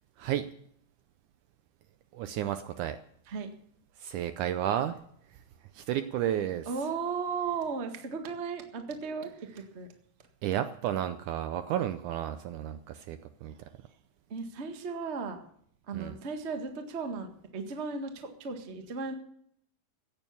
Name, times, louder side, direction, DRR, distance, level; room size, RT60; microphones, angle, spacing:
voice 1, 2.1-3.0 4.0-5.0 5.7-6.7 10.4-13.5 15.9-16.2, right 11 dB, 75° right, 11 dB, 1.9 m, -32 dB
voice 2, 6.7-9.3 9.5-9.9 14.3-15.4 15.9-19.1, right 5 dB, 35° right, 6 dB, 1.0 m, -35 dB
15.5 x 9.2 x 7.0 m, 0.66 s
omnidirectional pair, 4.0 m